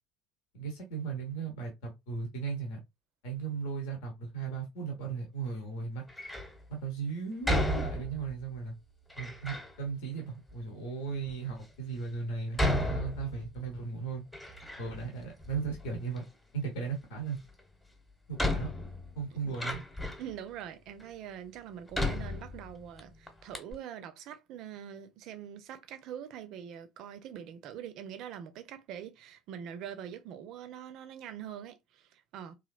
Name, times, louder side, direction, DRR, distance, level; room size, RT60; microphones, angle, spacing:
voice 1, 0.5-2.8 3.2-6.0 6.7-8.7 9.2-14.2 14.8-16.2 16.5-17.4 18.3-18.7 19.2-19.8, right 5 dB, 65° left, 0.9 m, -36 dB
Door, 6.1-6.6 7.4-8.4 9.1-9.7 10.5-10.6 11.3-11.4 12.5-13.7 14.0-15.1 15.4-16.2 17.6-17.7 18.4-20.3 21.0-21.1 21.9-23.0 23.3-23.4 23.5-23.7, left 1 dB, 10° left, 1.0 m, -33 dB
voice 2, 20.2-32.5, right 9 dB, 55° right, 0.5 m, -44 dB
3.2 x 2.4 x 2.3 m
figure-of-eight pair, 60°, 0 cm